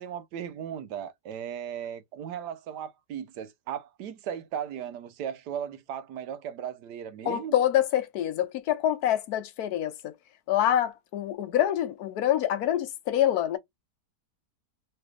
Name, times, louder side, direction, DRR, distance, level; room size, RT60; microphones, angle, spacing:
voice 1, 0.0-7.5, right 9 dB, 80° right, 1.3 m, -37 dB
voice 2, 7.2-10.1 10.5-13.6, left 11 dB, 70° left, 1.0 m, -26 dB
3.3 x 3.2 x 2.3 m
omnidirectional pair, 1.8 m